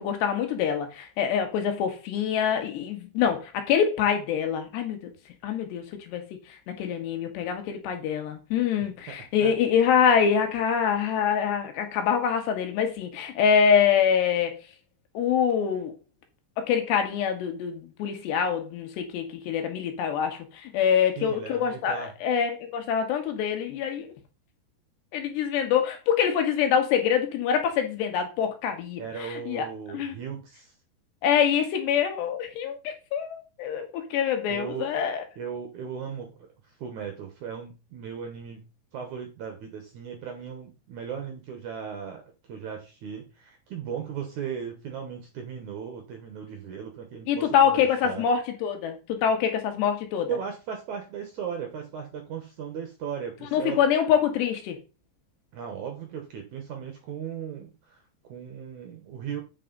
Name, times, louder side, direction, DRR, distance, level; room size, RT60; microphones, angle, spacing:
voice 1, 0.0-5.1 5.4-6.2 6.7-14.6 15.2-15.9 16.6-24.1 25.1-29.7 29.9-30.2 31.2-35.2 47.3-50.3 53.5-54.8, left 7 dB, 90° left, 3.6 m, -25 dB
voice 2, 8.8-9.2 9.4-9.5 21.2-22.1 29.0-30.7 34.5-34.9 35.4-38.6 38.9-42.2 42.5-48.3 50.3-53.8 55.5-59.4, right 7 dB, 70° right, 1.9 m, -37 dB
8.4 x 5.7 x 3.9 m
omnidirectional pair, 4.8 m